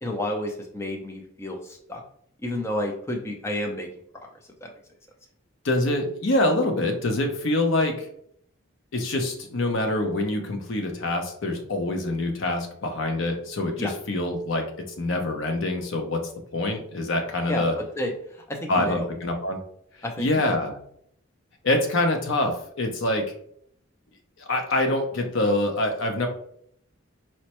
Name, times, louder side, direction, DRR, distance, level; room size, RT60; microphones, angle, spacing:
voice 1, 0.0-2.0 2.4-3.9 4.2-4.3 4.6-4.7 13.8-13.9 17.5-19.1 20.0-20.5, left 1 dB, 10° left, 2 dB, 0.4 m, -31 dB
voice 2, 5.6-8.1 8.9-14.7 15.0-17.7 18.7-19.6 20.2-20.8 21.6-23.2 24.4-26.3, left 1 dB, 65° left, 4 dB, 0.6 m, -25 dB
4.3 x 2.1 x 2.9 m, 0.67 s
head